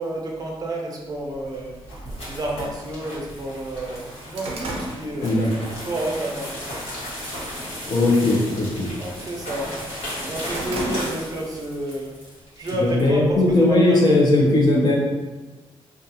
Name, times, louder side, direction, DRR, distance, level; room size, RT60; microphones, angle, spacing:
voice 1, 0.0-1.7 2.3-5.3 5.8-6.8 9.0-9.9 10.2-12.1 12.6-14.5, right 1 dB, 40° right, -1 dB, 0.5 m, -30 dB
sound 1, 1.3-13.1, equal, 80° left, 1.2 m, -35 dB
sound 2, 4.2-5.9 6.3-6.6 7.0-7.5 7.8-8.1 8.4-9.7 10.0-11.5 11.9-12.0 12.9-13.8, right 1 dB, 90° right, 0.5 m, -34 dB
voice 2, 7.8-8.9 12.8-15.0, left 2 dB, 40° left, -2 dB, 0.6 m, -18 dB
2.3 x 2.3 x 2.7 m, 1.2 s
wide cardioid pair, 130°, 10 cm